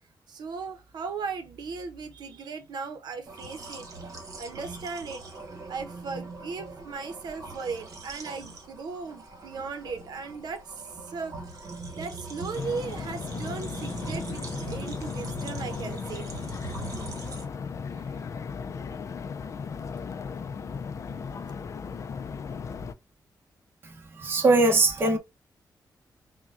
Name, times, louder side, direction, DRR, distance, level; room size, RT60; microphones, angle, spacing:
voice 1, 0.3-3.9 4.4-5.2 5.7-10.8 11.0-16.3 17.9-18.2, right 5 dB, 75° right, 0.8 m, -37 dB
sound 1, 3.2-17.4, right 3 dB, 50° right, 1.4 m, -41 dB
sound 2, 12.5-22.9, left 5 dB, 45° left, 0.4 m, -36 dB
voice 2, 24.2-25.2, right 2 dB, 30° right, 0.9 m, -21 dB
5.7 x 2.2 x 2.5 m
wide cardioid pair, 145°, 7 cm